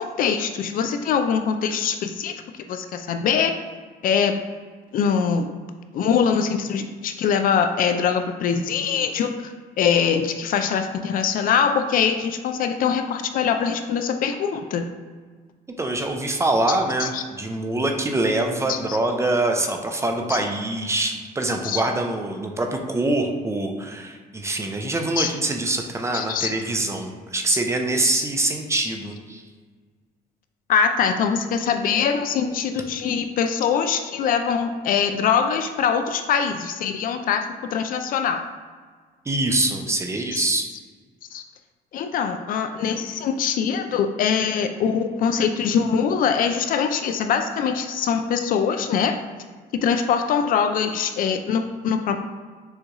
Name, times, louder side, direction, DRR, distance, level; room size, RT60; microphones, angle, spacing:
voice 1, 0.0-2.3 2.7-3.5 4.0-4.4 4.9-5.5 5.9-14.8 17.0-17.2 18.7-19.0 20.3-20.4 21.6-21.8 25.2-25.3 26.1-26.5 27.5-27.6 28.0-28.2 28.7-28.9 30.7-37.5 37.7-38.4 40.3-40.5 41.3-41.4 41.9-49.2 49.8-52.2, left 7 dB, 55° left, 7 dB, 0.4 m, -23 dB
voice 2, 15.8-29.4 39.3-40.7, right 2 dB, 15° right, 3 dB, 0.5 m, -24 dB
6.3 x 2.3 x 3.0 m, 1.5 s
cardioid pair, 110°, 17 cm